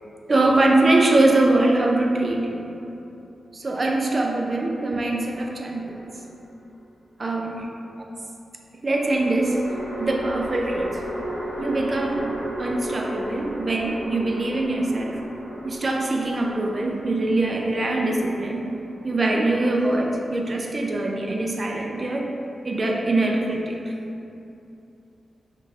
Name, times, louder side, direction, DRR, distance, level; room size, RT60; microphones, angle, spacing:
voice 1, 0.3-2.6 3.5-6.1 7.2-7.6 8.8-9.6 10.0-11.0 11.6-15.2 15.6-18.6 19.0-22.3 22.6-23.8, right 2 dB, 40° right, 1 dB, 0.3 m, -23 dB
sound 1, 5.8-6.6 8.9-20.3, right 1 dB, 85° right, 0.6 m, -35 dB
3.7 x 2.3 x 2.7 m, 2.8 s
wide cardioid pair, 95°, 0 cm